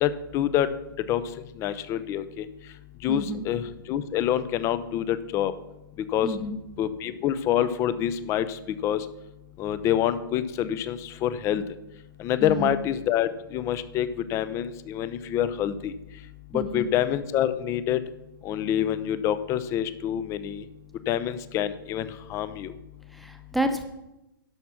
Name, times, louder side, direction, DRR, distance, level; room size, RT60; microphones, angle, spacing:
voice 1, 0.0-0.7 1.1-1.2 1.6-2.4 3.0-3.6 3.9-5.5 6.1-6.3 6.8-9.0 9.6-11.6 12.2-15.9 16.5-18.0 18.4-20.6 21.1-22.7, left 10 dB, 25° left, 14 dB, 0.5 m, -26 dB
voice 2, 3.1-3.5 6.2-6.6 12.4-12.8 16.5-16.9 23.1-23.8, right 1 dB, ahead, 6 dB, 0.9 m, -30 dB
11.0 x 6.0 x 5.7 m, 0.93 s
hypercardioid pair, 135°, 12 cm